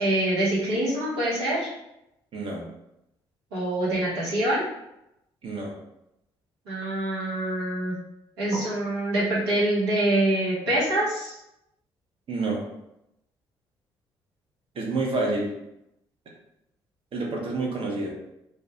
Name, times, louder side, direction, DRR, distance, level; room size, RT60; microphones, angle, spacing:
voice 1, 0.0-1.7 3.5-4.6 6.7-8.0 8.4-11.3, right 1 dB, 75° right, -7 dB, 0.9 m, -25 dB
voice 2, 2.3-2.6 5.4-5.7 8.5-8.7 12.3-12.6 14.7-15.5 17.1-18.1, right 3 dB, 45° right, -1 dB, 0.7 m, -28 dB
2.2 x 2.1 x 2.7 m, 0.85 s
figure-of-eight pair, 40°, 13 cm